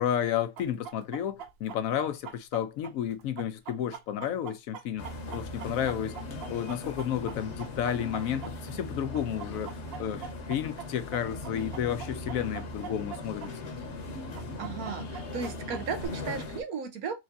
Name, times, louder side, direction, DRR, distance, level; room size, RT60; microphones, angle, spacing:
voice 1, 0.0-5.1 5.3-6.2 6.5-13.5, left 10 dB, 70° left, 1.1 m, -32 dB
Chicken rooster, 0.6-8.9 9.1-13.5 13.8-13.9 14.3-16.1, right 8 dB, 65° right, 0.6 m, -43 dB
sound 1, 5.0-16.6, left 2 dB, 55° left, 1.2 m, -39 dB
voice 2, 14.6-17.2, right 6 dB, 90° right, 1.5 m, -35 dB
4.8 x 3.3 x 2.6 m
omnidirectional pair, 1.5 m